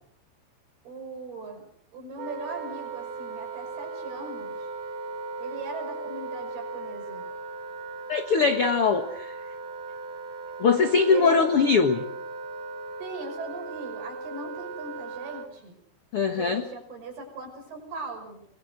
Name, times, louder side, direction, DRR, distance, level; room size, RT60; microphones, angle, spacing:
voice 1, 0.8-1.7 1.9-4.7 5.4-7.3 11.1-11.7 13.0-15.8 16.3-18.5, right 3 dB, 65° right, 3 dB, 7.8 m, -39 dB
Wind instrument woodwind instrument, 2.2-15.5, right 3 dB, 80° right, 5.4 m, -38 dB
voice 2, 8.1-9.4 10.6-12.0 16.1-16.6, left 5 dB, 65° left, 7 dB, 1.4 m, -22 dB
23.5 x 23.0 x 8.0 m, 0.67 s
omnidirectional pair, 4.9 m